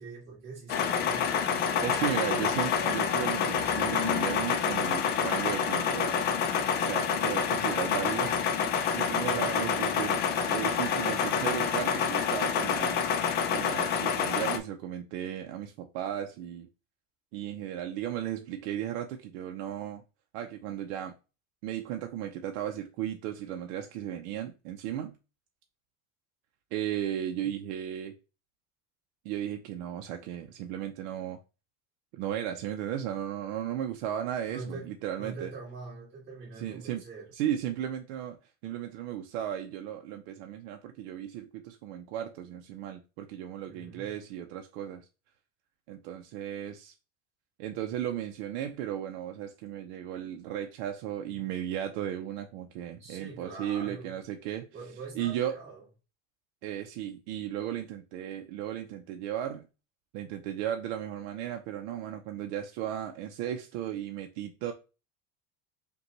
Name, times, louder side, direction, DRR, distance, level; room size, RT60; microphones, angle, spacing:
voice 1, 0.0-1.4 9.2-9.9 27.3-27.5 34.4-34.9 35.2-37.3 43.7-44.0 53.0-54.1 54.7-55.8, right 3 dB, 35° right, 2.2 m, -44 dB
sound 1, 0.7-14.6, left 7 dB, 30° left, 0.4 m, -28 dB
voice 2, 1.8-6.2 6.9-10.2 10.5-13.0 13.5-16.7 17.3-20.0 20.3-21.1 21.6-25.2 26.7-28.1 29.2-31.4 32.1-35.5 36.6-37.0 37.3-45.1 45.9-46.9 47.6-54.7 55.1-55.6 56.6-59.7 60.1-64.7, right 10 dB, 80° right, 0.6 m, -35 dB
5.3 x 2.3 x 2.9 m
cardioid pair, 170°, 34 cm